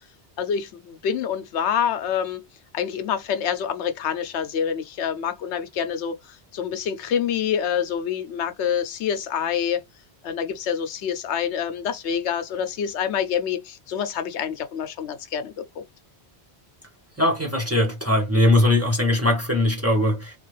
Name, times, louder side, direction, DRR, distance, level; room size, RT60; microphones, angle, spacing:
voice 1, 0.4-2.4 2.7-9.8 10.2-15.8, left 8 dB, 90° left, 1.0 m, -27 dB
voice 2, 17.2-20.3, left 1 dB, 15° right, 0.9 m, -20 dB
3.6 x 2.4 x 3.1 m
omnidirectional pair, 1.1 m